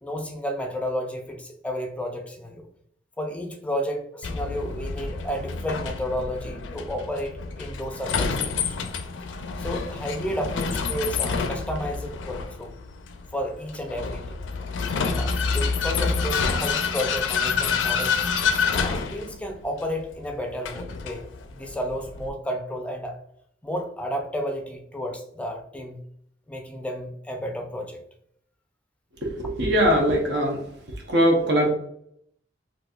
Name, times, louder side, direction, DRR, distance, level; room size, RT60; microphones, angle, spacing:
voice 1, 0.0-2.7 3.2-8.8 9.6-12.7 13.3-14.4 15.0-18.2 18.7-23.2 23.6-26.0 26.5-28.0, equal, 5° left, 4 dB, 0.4 m, -32 dB
Vehicle, 4.2-22.3, left 5 dB, 85° left, 0.4 m, -28 dB
voice 2, 29.2-30.6 31.1-31.7, equal, 65° right, 0 dB, 0.8 m, -21 dB
4.0 x 2.6 x 2.3 m, 0.70 s
head